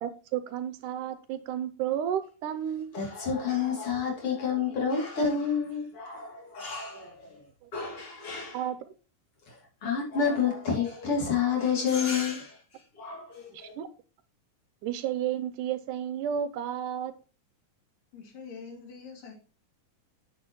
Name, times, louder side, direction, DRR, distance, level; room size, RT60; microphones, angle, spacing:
voice 1, 0.0-3.0 7.6-7.7 8.3-8.8 13.5-13.9 14.8-17.1, right 10 dB, 80° right, 2.1 m, -32 dB
voice 2, 2.9-7.4 7.7-8.6 9.5-13.8, left 6 dB, 45° left, 3.4 m, -30 dB
voice 3, 18.1-19.3, left 5 dB, 85° left, 3.8 m, -44 dB
9.9 x 6.8 x 3.0 m
omnidirectional pair, 3.8 m